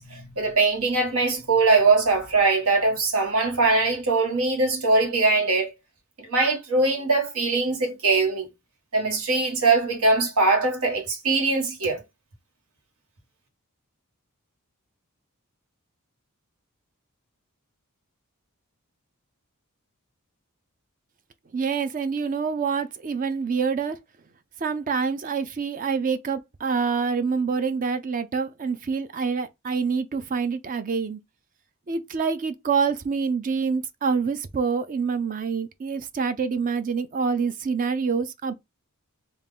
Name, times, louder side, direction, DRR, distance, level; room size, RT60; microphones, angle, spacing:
voice 1, 0.0-5.7 6.2-8.5 8.9-12.0, right 3 dB, 90° right, 1.2 m, -22 dB
voice 2, 21.5-24.0 24.6-31.2 31.9-38.5, right 5 dB, 40° right, 0.4 m, -26 dB
3.5 x 2.4 x 3.5 m
head